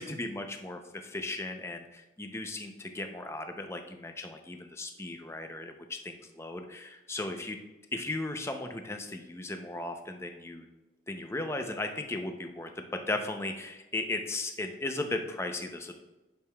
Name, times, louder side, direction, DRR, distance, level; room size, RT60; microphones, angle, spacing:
voice 1, 0.0-7.6 7.9-10.7 11.1-15.9, left 2 dB, 15° left, 5 dB, 0.6 m, -36 dB
10.5 x 6.6 x 2.3 m, 1.1 s
head